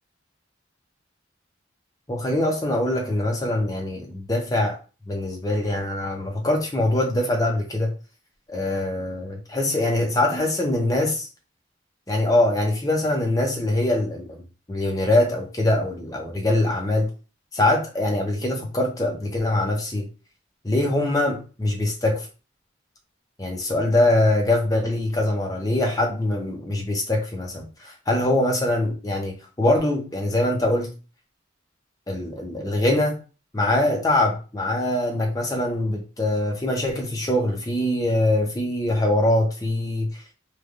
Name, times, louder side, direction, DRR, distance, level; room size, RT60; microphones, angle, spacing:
voice 1, 2.1-4.8 5.1-7.9 8.5-11.3 12.1-14.4 14.7-17.1 17.5-20.1 20.6-22.3 23.4-30.9 32.1-33.2 33.5-40.2, left 1 dB, 20° left, 0.6 m, -23 dB
3.2 x 2.3 x 2.4 m
head